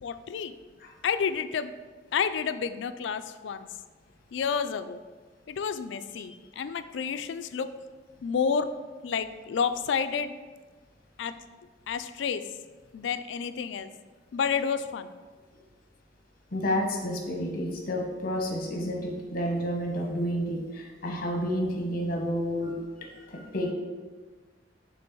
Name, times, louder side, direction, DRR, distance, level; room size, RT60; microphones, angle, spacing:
voice 1, 0.0-0.6 1.0-1.7 2.1-3.7 4.3-5.0 5.5-7.7 8.2-8.7 9.0-10.3 11.2-11.3 11.9-12.4 12.9-13.9 14.3-15.1, left 6 dB, 75° left, 11 dB, 0.4 m, -30 dB
voice 2, 16.5-23.7, equal, 50° left, 1 dB, 1.0 m, -30 dB
6.1 x 3.8 x 4.5 m, 1.4 s
head